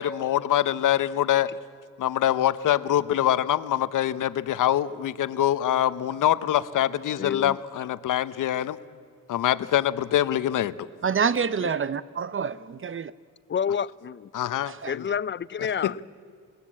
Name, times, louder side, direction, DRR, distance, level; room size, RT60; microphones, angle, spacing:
voice 1, 0.0-1.5 2.0-8.8 9.3-10.7 14.3-15.0 15.8-16.0, left 11 dB, 70° left, 0.9 m, -24 dB
voice 2, 7.2-7.6 11.6-11.7 13.5-14.3 14.9-16.0, left 7 dB, 35° left, 0.5 m, -29 dB
voice 3, 11.0-13.1 14.7-14.9, right 6 dB, 40° right, 0.7 m, -27 dB
21.5 x 18.5 x 8.5 m
cardioid pair, 65°, 32 cm